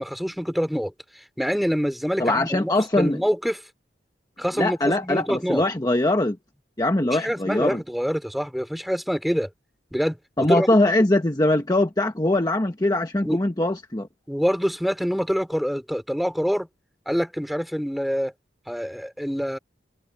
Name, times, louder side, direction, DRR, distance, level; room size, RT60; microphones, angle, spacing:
voice 1, 0.0-3.6 4.4-5.6 7.1-9.5 9.9-10.7 13.2-13.4 14.3-16.7 17.1-18.3 18.7-19.6, equal, ahead, 4.1 m, -26 dB
voice 2, 2.2-3.2 4.6-6.4 6.8-7.8 10.4-14.1, left 1 dB, 20° left, 1.1 m, -22 dB
head